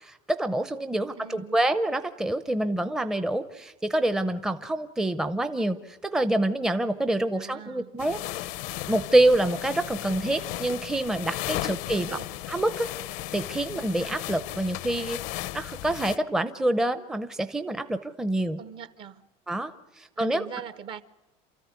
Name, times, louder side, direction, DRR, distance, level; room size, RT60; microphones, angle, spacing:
voice 1, 0.0-8.5 8.9-12.1 12.5-15.2 15.5-18.6 19.5-20.5, right 1 dB, 5° right, 0.7 m, -27 dB
voice 2, 1.2-1.6 7.3-7.9 11.9-12.3 18.6-19.2 20.2-21.0, right 8 dB, 30° right, 0.8 m, -41 dB
sound 1, 8.0-16.2, left 16 dB, 55° left, 0.7 m, -35 dB
28.5 x 14.0 x 9.5 m
cardioid pair, 165°, 16 cm